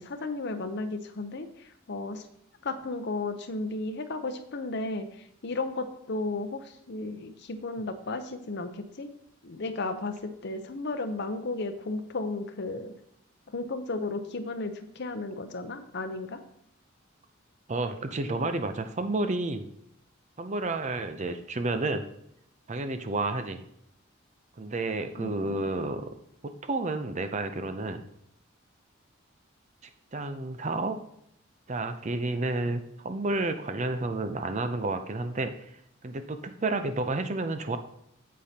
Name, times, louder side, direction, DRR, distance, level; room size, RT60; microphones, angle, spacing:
voice 1, 0.0-2.3 2.6-9.1 9.4-12.9 13.5-16.4 25.2-25.6, left 3 dB, 55° left, 8 dB, 0.7 m, -34 dB
voice 2, 17.7-19.7 20.4-22.1 22.7-23.6 24.6-26.2 26.4-28.1 30.1-31.0 31.7-35.7 36.0-37.8, right 2 dB, 35° right, 8 dB, 0.6 m, -31 dB
8.4 x 7.6 x 2.9 m, 0.74 s
head